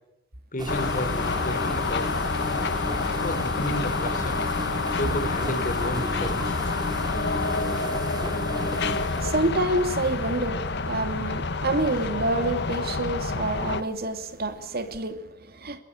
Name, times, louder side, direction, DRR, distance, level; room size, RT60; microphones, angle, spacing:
voice 1, 0.5-2.1 3.1-4.5 5.0-6.4, equal, 40° left, 4.0 m, -32 dB
sound 1, 0.6-10.8 11.4-11.7 12.2-12.4 13.2-13.6 13.9-14.0 14.9-15.0, equal, 20° right, 2.8 m, -35 dB
sound 2, 0.7-13.8, left 3 dB, 55° left, 1.3 m, -28 dB
voice 2, 9.1-15.8, right 2 dB, 50° right, 2.7 m, -28 dB
23.0 x 21.0 x 8.8 m
head